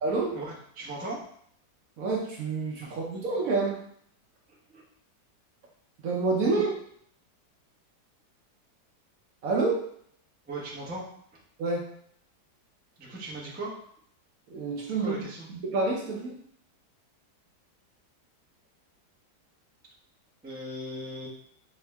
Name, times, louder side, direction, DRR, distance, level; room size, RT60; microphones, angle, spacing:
voice 1, 0.1-1.2 2.8-2.9 4.5-4.8 6.5-6.6 10.5-11.1 13.0-13.7 14.9-15.5 20.4-21.3, right 2 dB, 10° right, -5 dB, 0.5 m, -38 dB
voice 2, 2.0-3.8 6.0-6.7 9.4-9.8 11.6-11.9 14.5-15.1 15.5-16.3, right 3 dB, 65° right, -2 dB, 1.0 m, -28 dB
3.6 x 3.2 x 3.4 m, 0.65 s
omnidirectional pair, 1.9 m